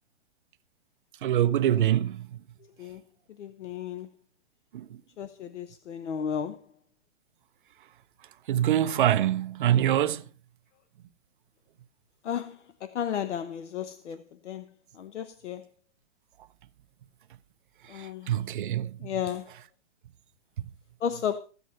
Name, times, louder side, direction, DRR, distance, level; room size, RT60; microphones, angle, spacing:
voice 1, 1.2-2.2 4.7-4.8 8.5-10.2 18.0-18.9, right 11 dB, 45° right, 0.7 m, -24 dB
voice 2, 3.3-4.1 5.2-6.7 12.2-14.7 14.9-15.7 17.9-18.4 19.0-19.5 21.0-21.4, left 8 dB, 80° left, 1.0 m, -34 dB
14.5 x 8.1 x 5.5 m
hypercardioid pair, 165°, 35 cm